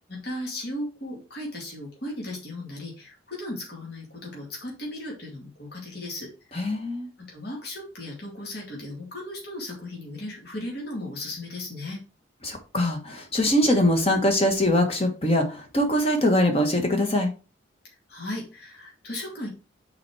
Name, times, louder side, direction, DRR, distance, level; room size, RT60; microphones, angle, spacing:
voice 1, 0.1-6.3 7.2-12.0 17.8-19.5, left 1 dB, 55° left, 2.3 m, -36 dB
voice 2, 6.5-7.1 12.4-17.3, left 1 dB, 30° left, 1.4 m, -22 dB
6.2 x 4.3 x 4.8 m
head